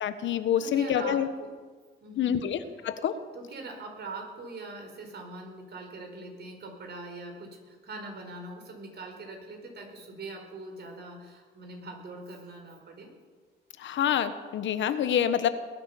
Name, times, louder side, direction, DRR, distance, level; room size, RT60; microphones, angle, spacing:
voice 1, 0.0-1.3 2.2-3.1 13.8-15.5, left 9 dB, 70° left, 11 dB, 1.2 m, -27 dB
voice 2, 0.6-1.5 2.0-2.5 3.3-13.1, right 2 dB, 55° right, 3 dB, 4.6 m, -42 dB
20.5 x 10.0 x 6.9 m, 1.5 s
cardioid pair, 90°, 20 cm